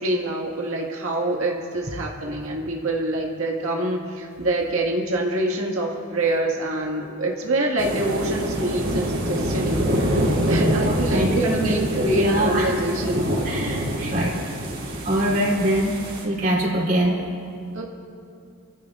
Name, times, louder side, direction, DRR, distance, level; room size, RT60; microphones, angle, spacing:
voice 1, 0.0-10.2 10.5-13.3 17.7-17.8, right 1 dB, 90° right, -1 dB, 1.8 m, -25 dB
sound 1, 7.8-16.2, equal, 60° right, 3.8 m, -25 dB
voice 2, 10.4-11.9 12.1-12.7 13.4-14.4 15.0-16.0 16.2-17.2, right 1 dB, 45° right, -3 dB, 3.5 m, -23 dB
29.5 x 15.0 x 2.5 m, 2.5 s
head